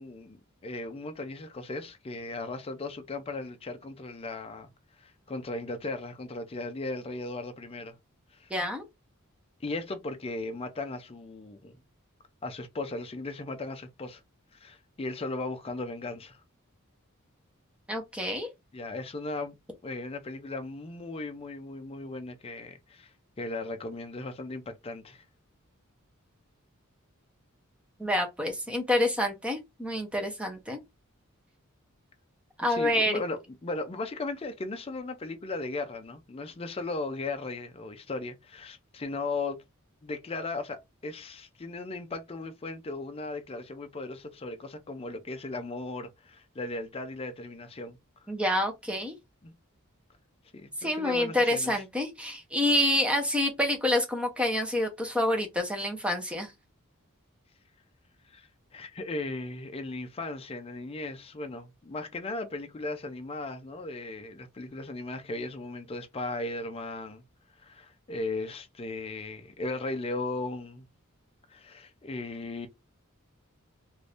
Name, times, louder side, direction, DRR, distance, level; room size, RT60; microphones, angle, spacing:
voice 1, 0.0-4.7 5.0-7.9 8.3-8.5 9.6-11.8 12.4-14.2 14.6-16.4 18.7-19.6 19.8-23.1 23.4-25.2 32.7-39.6 40.0-48.0 49.4-49.5 50.5-51.7 58.3-67.2 67.6-70.8 71.5-72.7, left 2 dB, 30° left, 0.5 m, -37 dB
voice 2, 8.5-8.8 17.9-18.5 28.0-30.8 32.6-33.1 48.3-49.2 50.8-56.5, left 1 dB, 5° right, 0.8 m, -27 dB
2.6 x 2.6 x 3.3 m
head